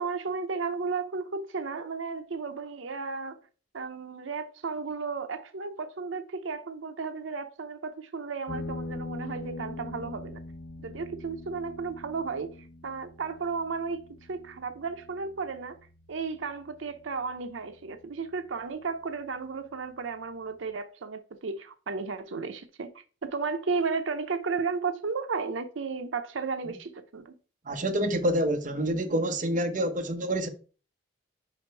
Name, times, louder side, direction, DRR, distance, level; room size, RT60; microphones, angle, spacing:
voice 1, 0.0-3.4 3.7-10.4 10.8-12.6 12.8-15.8 16.1-27.4, right 4 dB, 80° right, 0.6 m, -34 dB
sound 1, 8.5-17.5, left 2 dB, 90° left, 1.1 m, -42 dB
voice 2, 27.7-30.5, right 1 dB, 40° right, 0.8 m, -27 dB
5.1 x 5.0 x 4.5 m
head